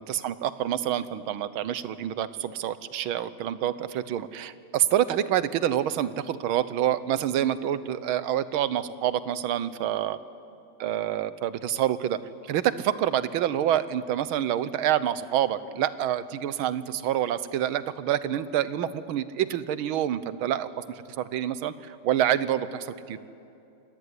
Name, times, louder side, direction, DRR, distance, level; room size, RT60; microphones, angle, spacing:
voice 1, 0.0-10.2 10.8-12.2 12.5-23.2, right 11 dB, 85° right, 15 dB, 1.7 m, -27 dB
27.5 x 19.0 x 9.8 m, 2.7 s
omnidirectional pair, 2.2 m